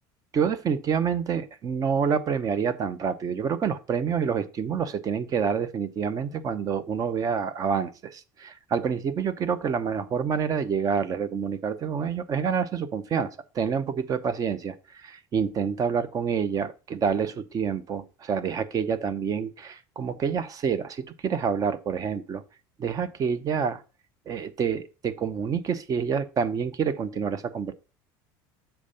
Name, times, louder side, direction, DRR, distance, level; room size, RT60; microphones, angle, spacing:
voice 1, 0.3-22.4 22.8-23.8 24.3-27.7, right 6 dB, 35° right, 0.8 m, -27 dB
7.2 x 4.4 x 5.1 m
supercardioid pair, 120°, 10 cm